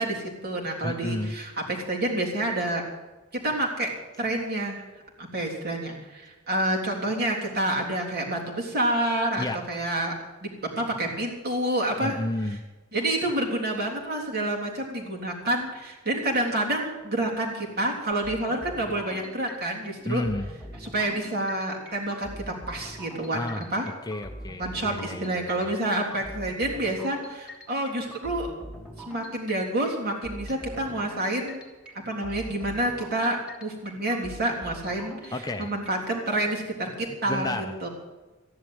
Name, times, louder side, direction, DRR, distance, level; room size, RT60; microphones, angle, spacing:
voice 1, 0.0-2.8 3.3-3.9 4.2-4.8 5.2-10.1 10.4-12.2 12.9-20.2 20.8-23.9 24.6-28.5 29.1-31.6 32.1-37.9, right 1 dB, 45° right, -1 dB, 3.4 m, -28 dB
voice 2, 0.8-1.3 9.4-9.6 12.0-12.6 20.0-20.5 23.3-23.7 24.1-25.7 35.3-35.7 37.3-37.9, left 1 dB, 15° left, 6 dB, 0.8 m, -31 dB
sound 1, 18.1-36.2, equal, 5° right, 3.1 m, -43 dB
14.0 x 11.0 x 8.0 m, 1.2 s
head